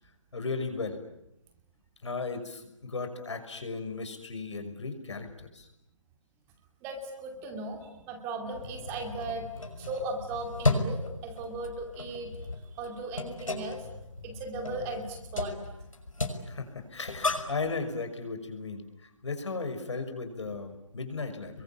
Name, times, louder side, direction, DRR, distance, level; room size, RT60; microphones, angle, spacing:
voice 1, 0.3-1.0 2.0-5.7 16.5-21.6, left 4 dB, 65° left, 6 dB, 6.0 m, -36 dB
voice 2, 6.8-9.5 9.7-13.9 14.2-15.7, right 2 dB, 15° right, 4 dB, 2.5 m, -37 dB
sound 1, 8.5-17.6, left 2 dB, 85° left, 6.1 m, -35 dB
30.0 x 23.0 x 8.7 m, 0.83 s
figure-of-eight pair, 160°, 16 cm